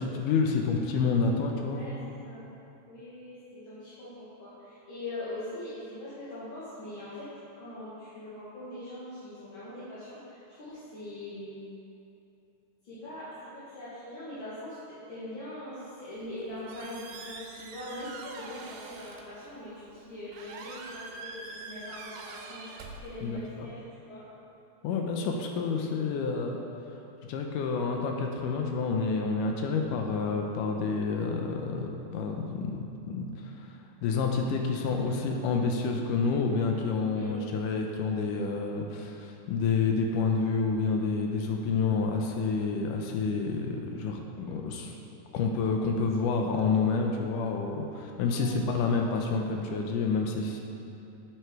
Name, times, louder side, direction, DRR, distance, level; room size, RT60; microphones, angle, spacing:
voice 1, 0.0-1.8 23.2-23.7 24.8-26.6 27.3-44.9 45.3-50.6, left 4 dB, 80° left, 2 dB, 2.1 m, -29 dB
voice 2, 1.6-1.9 2.2-2.5 2.9-7.3 7.6-11.6 12.8-23.8 24.1-24.2 37.0-37.4 48.2-48.5, left 1 dB, 45° left, -12 dB, 1.8 m, -42 dB
Squeak, 16.2-23.6, right 3 dB, 75° right, 2.4 m, -45 dB
7.9 x 7.8 x 4.7 m, 2.8 s
omnidirectional pair, 4.0 m